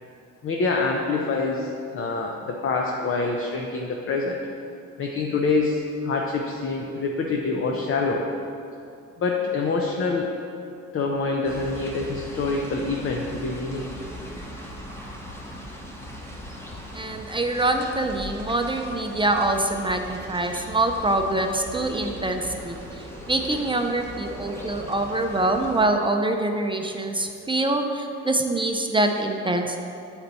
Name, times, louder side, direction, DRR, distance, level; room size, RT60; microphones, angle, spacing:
voice 1, 0.4-4.4 5.0-8.2 9.2-10.3 10.9-13.8, left 3 dB, 45° left, 0 dB, 0.6 m, -26 dB
sound 1, 11.4-25.9, equal, 10° left, 1.0 m, -39 dB
voice 2, 16.9-29.8, right 2 dB, 15° right, 4 dB, 0.4 m, -25 dB
7.9 x 4.3 x 4.0 m, 2.6 s
cardioid pair, 90°, 30 cm